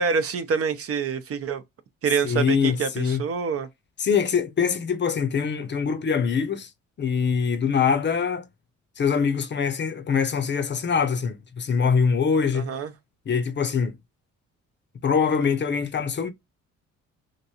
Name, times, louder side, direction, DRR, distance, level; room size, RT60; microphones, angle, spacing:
voice 1, 0.0-1.6 2.0-3.7 12.5-12.9, right 6 dB, 50° right, 0.7 m, -26 dB
voice 2, 2.2-3.2 4.0-6.7 7.0-8.5 9.0-12.7 13.3-14.0 15.0-16.3, left 6 dB, 35° left, 0.6 m, -23 dB
3.0 x 2.6 x 2.8 m
cardioid pair, 90°, 30 cm